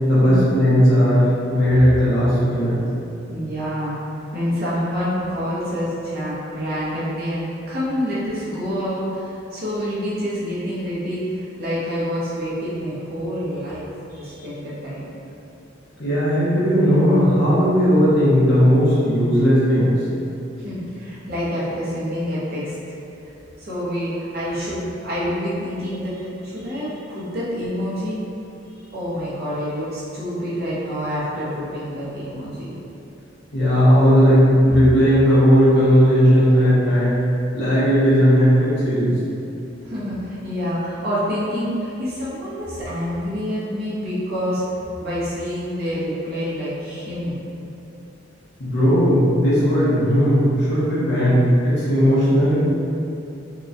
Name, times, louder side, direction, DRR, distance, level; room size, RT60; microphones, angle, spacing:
voice 1, 0.0-2.8 16.0-20.1 33.5-37.2 37.5-39.2 48.6-52.6, equal, 65° left, -9 dB, 0.9 m, -16 dB
voice 2, 3.3-15.1 20.6-22.8 23.6-28.2 28.9-32.7 39.8-44.6 45.0-47.4, equal, 55° right, -9 dB, 0.8 m, -27 dB
2.9 x 2.2 x 2.5 m, 2.7 s
head